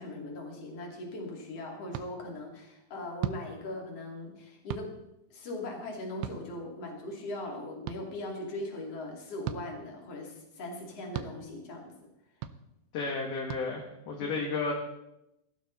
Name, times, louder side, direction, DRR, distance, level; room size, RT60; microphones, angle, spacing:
voice 1, 0.0-4.9 5.3-11.9, left 1 dB, 40° left, 0 dB, 3.4 m, -40 dB
sound 1, 1.9-2.1 3.2-3.4 4.7-4.9 6.2-6.4 7.9-8.0 9.4-9.6 11.1-11.3 12.4-12.6 13.5-13.6, right 11 dB, 80° right, 2.8 m, -35 dB
voice 2, 12.9-14.7, left 4 dB, 60° left, 0 dB, 2.7 m, -32 dB
17.5 x 12.0 x 4.1 m, 0.87 s
omnidirectional pair, 4.9 m